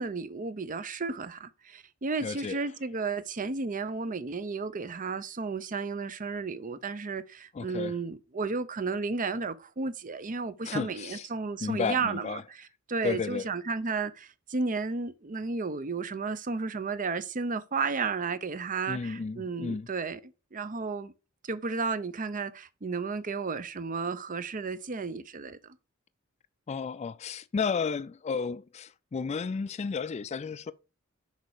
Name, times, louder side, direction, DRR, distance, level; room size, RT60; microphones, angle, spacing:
voice 1, 0.0-12.4 12.9-20.2 20.5-21.1 21.4-25.6, right 4 dB, 40° right, 0.6 m, -33 dB
voice 2, 2.2-2.6 7.5-8.0 10.6-11.3 11.6-12.4 13.0-13.5 18.9-19.9 26.7-30.7, left 5 dB, 30° left, 0.3 m, -32 dB
6.4 x 4.7 x 6.6 m
head